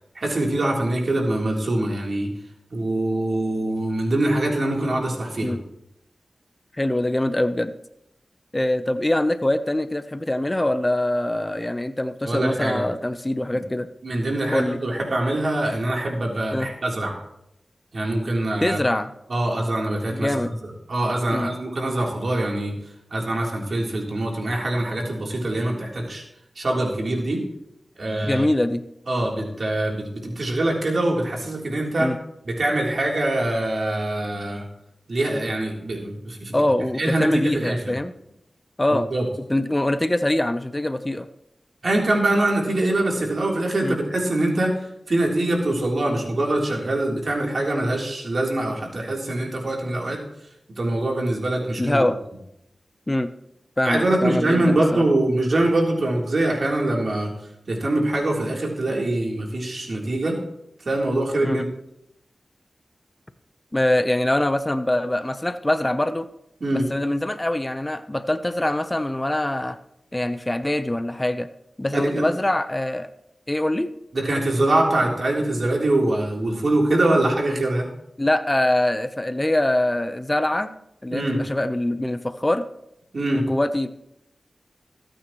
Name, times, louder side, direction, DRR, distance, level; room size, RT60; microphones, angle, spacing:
voice 1, 0.2-2.3 2.7-5.6 12.2-12.8 13.5-13.6 14.0-17.2 17.9-18.8 19.3-22.7 23.1-26.2 26.6-27.4 28.0-28.5 29.1-32.1 32.5-34.6 35.1-36.6 37.0-37.9 38.9-39.3 41.8-44.7 45.1-50.2 50.8-52.1 53.8-57.3 57.7-60.4 60.9-61.6 66.6-66.8 71.9-72.2 74.1-77.9 81.1-81.4 83.1-83.4, right 1 dB, 70° right, -1 dB, 3.5 m, -23 dB
voice 2, 6.8-7.7 8.5-13.9 14.5-14.8 16.5-16.7 18.6-19.1 20.1-20.5 21.3-21.5 28.3-28.8 32.0-32.2 36.5-38.1 38.8-39.1 39.5-41.3 43.8-44.0 51.8-52.2 53.1-53.3 53.8-55.0 61.4-61.6 63.7-66.3 66.9-69.8 70.1-71.5 71.8-73.1 73.5-73.9 78.2-80.7 81.0-82.6 83.3-83.9, left 1 dB, 25° left, 11 dB, 0.8 m, -23 dB
22.0 x 9.0 x 3.1 m, 0.82 s
cardioid pair, 40°, 0 cm